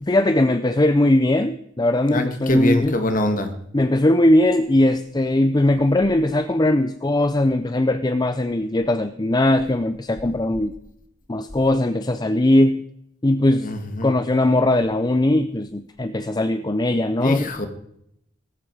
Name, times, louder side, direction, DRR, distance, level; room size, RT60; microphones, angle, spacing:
voice 1, 0.0-3.0 3.7-10.7 11.3-12.9 13.2-13.7 14.0-17.5, left 1 dB, 20° left, 11 dB, 0.5 m, -19 dB
voice 2, 2.1-3.5 13.6-14.1 17.2-17.7, left 1 dB, 40° left, 7 dB, 2.0 m, -23 dB
18.0 x 15.0 x 4.9 m, 0.76 s
head